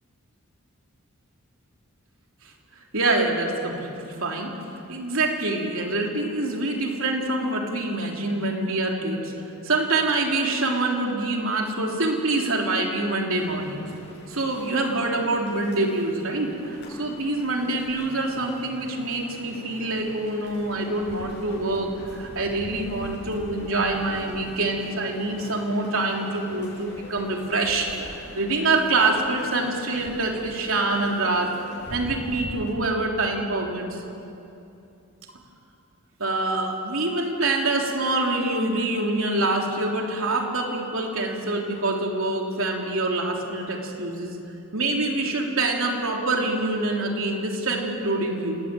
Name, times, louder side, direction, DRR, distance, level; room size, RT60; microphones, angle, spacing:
voice 1, 2.9-4.5 4.9-13.8 14.3-28.0 28.3-31.6 31.9-34.0 36.2-44.4 44.7-48.6, right 2 dB, 70° right, 1 dB, 3.6 m, -25 dB
sound 1, 13.4-32.7, equal, 50° left, 7.5 m, -43 dB
28.5 x 19.5 x 9.3 m, 2.8 s
head